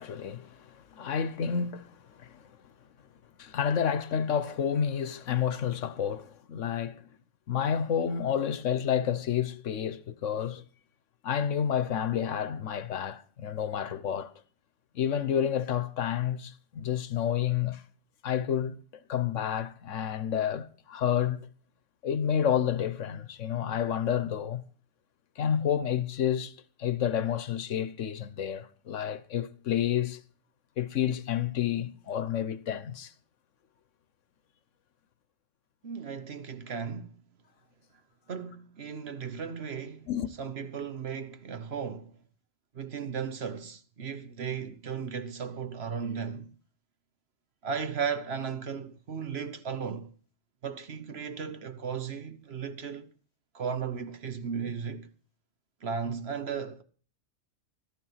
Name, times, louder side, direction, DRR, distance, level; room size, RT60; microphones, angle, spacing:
voice 1, 0.0-2.5 3.4-7.0 7.5-10.6 11.2-14.3 14.9-17.8 18.2-18.8 19.1-21.5 22.0-24.6 25.4-30.2 30.8-33.1 40.1-40.3, left 9 dB, 70° left, 1.2 m, -30 dB
voice 2, 35.8-37.2 38.3-40.1 40.4-42.2 42.7-46.5 47.6-50.1 50.6-53.1 53.5-55.1 55.8-56.8, right 6 dB, 55° right, 1.2 m, -35 dB
14.0 x 13.0 x 5.7 m
omnidirectional pair, 1.3 m